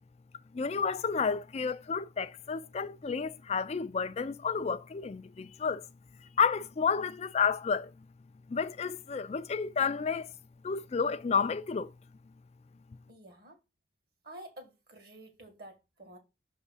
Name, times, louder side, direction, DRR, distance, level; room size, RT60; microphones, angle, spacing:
voice 1, 0.5-5.8 6.4-7.9 8.5-10.3 10.6-11.9, left 6 dB, 35° left, 0.3 m, -31 dB
voice 2, 13.1-13.6 14.2-16.2, right 1 dB, 50° right, 1.9 m, -50 dB
6.4 x 3.5 x 5.5 m
head